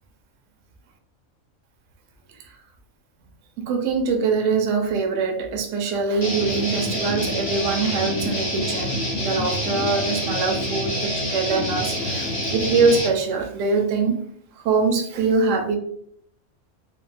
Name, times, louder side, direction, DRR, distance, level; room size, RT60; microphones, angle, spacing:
voice 1, 3.6-14.2 14.6-15.8, right 4 dB, 70° right, 3 dB, 0.9 m, -23 dB
Guitar, 6.2-13.1, left 1 dB, 40° left, 0.5 m, -26 dB
3.4 x 2.2 x 2.4 m, 0.67 s
omnidirectional pair, 1.5 m